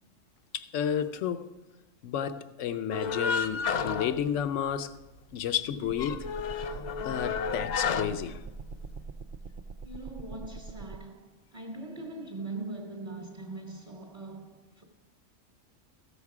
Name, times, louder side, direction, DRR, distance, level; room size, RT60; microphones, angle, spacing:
voice 1, 0.5-1.5 2.0-5.0 5.3-6.3 7.0-8.4, left 8 dB, 70° left, 1.0 m, -31 dB
sound 1, 2.9-5.0 5.3-5.4 5.8-9.0, left 6 dB, 85° left, 0.3 m, -32 dB
sound 2, 5.8-11.0, right 4 dB, 70° right, 0.4 m, -43 dB
voice 2, 9.8-14.8, right 2 dB, 30° right, 0.9 m, -41 dB
14.0 x 7.4 x 4.8 m
omnidirectional pair, 1.4 m